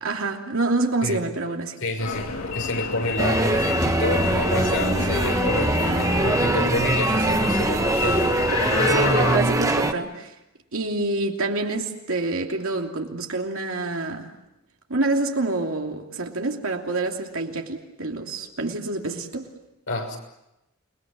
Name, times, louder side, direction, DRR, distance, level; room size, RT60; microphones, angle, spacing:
voice 1, 0.0-1.8 8.9-10.3 10.7-14.3 14.9-19.5, right 2 dB, 70° right, 3.0 m, -27 dB
voice 2, 1.8-8.4 19.9-20.2, left 1 dB, 65° left, 6.3 m, -29 dB
sound 1, 2.0-9.4, left 4 dB, 85° left, 3.3 m, -29 dB
sound 2, 3.2-9.9, right 1 dB, 15° right, 1.3 m, -22 dB
29.0 x 21.5 x 7.6 m
head